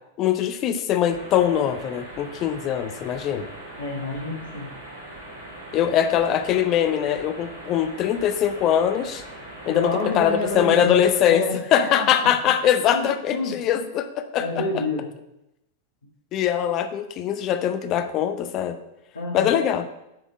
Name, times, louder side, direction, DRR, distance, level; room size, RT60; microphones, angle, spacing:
voice 1, 0.2-3.5 5.7-9.2 9.7-11.5 11.7-14.6 16.3-18.8 19.3-19.9, left 9 dB, 35° left, 10 dB, 0.6 m, -22 dB
sound 1, 1.1-11.2, right 1 dB, 90° left, 2.6 m, -41 dB
voice 2, 3.8-4.7 9.7-11.0 11.3-11.6 12.0-12.1 12.9-13.8 14.4-15.1 19.1-19.6, left 2 dB, 70° left, 0 dB, 1.6 m, -28 dB
8.8 x 3.6 x 5.7 m, 0.87 s
figure-of-eight pair, 90°, 0 cm